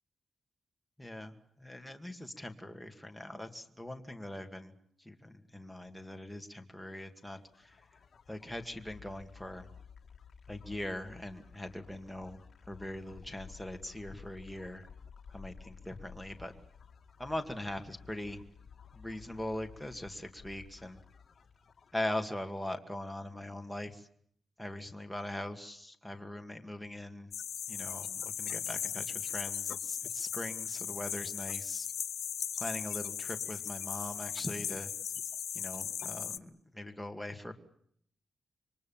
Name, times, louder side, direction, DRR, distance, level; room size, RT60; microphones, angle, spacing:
voice 1, 1.0-1.3 1.6-4.7 5.0-7.8 8.3-9.7 10.5-12.4 12.7-14.9 15.3-16.5 17.2-18.4 18.9-21.0 21.9-24.1 24.6-27.3 27.7-31.9 32.6-34.9 35.5-37.5, left 1 dB, ahead, 4 dB, 2.2 m, -41 dB
sound 1, 7.0-22.7, left 6 dB, 50° left, 2.7 m, -54 dB
sound 2, 27.3-36.4, left 8 dB, 90° left, 1.2 m, -37 dB
27.5 x 24.0 x 7.3 m, 0.67 s
wide cardioid pair, 150°, 0 cm